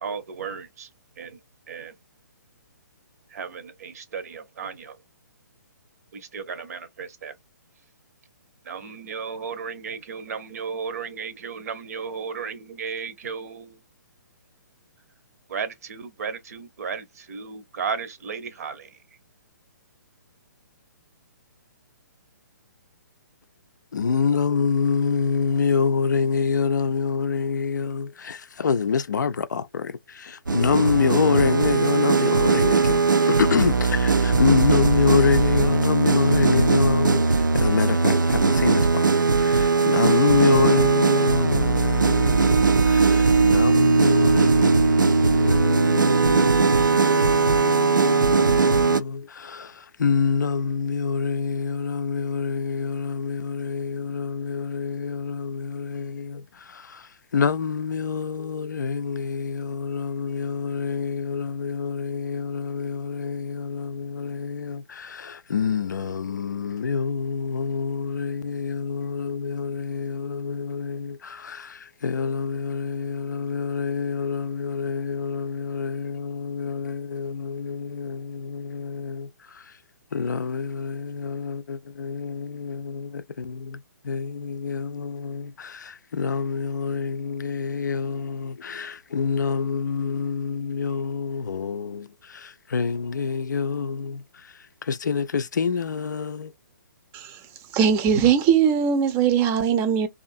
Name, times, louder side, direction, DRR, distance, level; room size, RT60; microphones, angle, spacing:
voice 1, 0.0-0.9 1.2-1.4 1.7-1.9 3.3-5.0 6.1-7.3 8.6-13.8 15.5-19.0, right 6 dB, 55° right, 0.7 m, -34 dB
voice 2, 23.9-79.8 80.1-96.5, left 5 dB, 70° left, 0.4 m, -26 dB
sound 1, 30.5-49.0, right 4 dB, 85° right, 0.4 m, -19 dB
voice 3, 97.7-100.1, right 7 dB, 20° right, 0.5 m, -20 dB
2.5 x 2.4 x 2.5 m
figure-of-eight pair, 130°, 10 cm